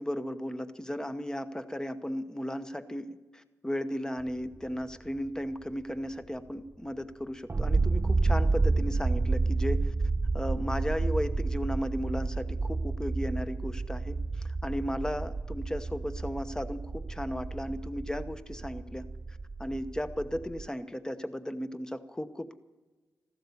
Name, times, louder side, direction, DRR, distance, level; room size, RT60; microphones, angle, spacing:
voice 1, 0.0-9.9 10.3-22.6, equal, 10° left, 10 dB, 1.0 m, -35 dB
sound 1, 7.5-20.7, right 3 dB, 30° right, 0.4 m, -30 dB
15.0 x 12.5 x 7.1 m, 1.3 s
cardioid pair, 80°, 6 cm